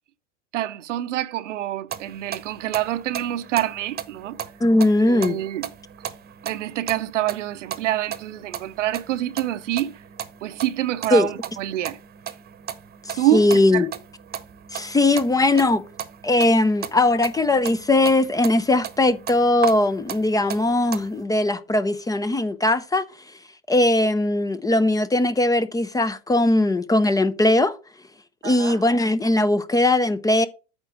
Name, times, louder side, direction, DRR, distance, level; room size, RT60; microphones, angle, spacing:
voice 1, 0.5-4.4 5.0-5.7 6.4-9.9 10.4-12.0 13.2-13.9 28.4-28.8, right 13 dB, 80° right, 0.7 m, -26 dB
sound 1, 1.9-21.2, right 9 dB, 25° right, 1.0 m, -37 dB
voice 2, 4.6-5.4 11.1-11.3 13.0-13.9 14.7-15.8 16.2-23.1 23.7-27.8 28.4-30.5, left 2 dB, 10° left, 0.5 m, -19 dB
8.8 x 4.4 x 5.0 m
hypercardioid pair, 90°, 36 cm